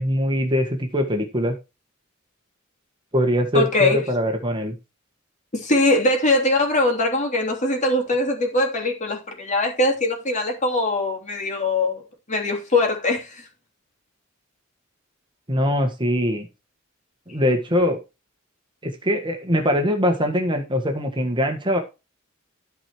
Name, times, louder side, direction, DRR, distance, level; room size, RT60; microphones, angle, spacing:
voice 1, 0.0-1.5 3.1-4.7 15.5-16.5 17.3-18.0 18.8-21.8, equal, 25° right, 1.5 m, -22 dB
voice 2, 3.5-4.0 5.5-12.0 12.3-13.4, left 2 dB, 35° left, 3.0 m, -21 dB
13.0 x 4.8 x 4.5 m
head